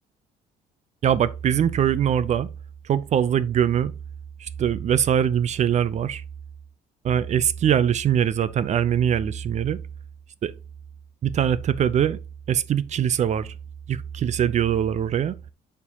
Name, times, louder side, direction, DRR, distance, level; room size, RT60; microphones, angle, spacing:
voice 1, 1.0-2.5 2.9-3.9 4.4-6.2 7.0-9.8 10.4-10.5 11.2-12.2 12.5-13.5 13.9-15.4, right 9 dB, 45° right, 0.5 m, -22 dB
9.5 x 4.5 x 2.8 m
cardioid pair, 110°, 17 cm